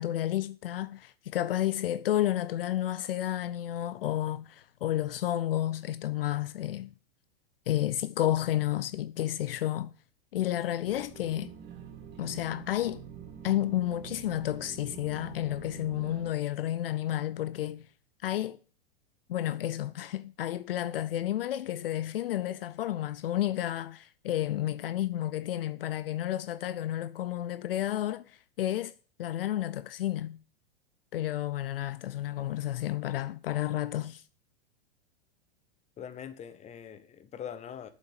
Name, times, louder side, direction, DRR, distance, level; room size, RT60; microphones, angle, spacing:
voice 1, 0.0-6.9 7.7-9.9 10.3-11.5 12.2-13.0 13.4-17.8 18.2-18.6 19.3-28.9 29.2-30.4 31.1-34.2, left 13 dB, 70° left, 0.5 m, -31 dB
sound 1, 10.8-16.3, right 8 dB, 35° right, 2.4 m, -46 dB
voice 2, 36.0-37.9, left 8 dB, 25° left, 1.1 m, -42 dB
7.9 x 7.3 x 7.0 m
hypercardioid pair, 105°, 30 cm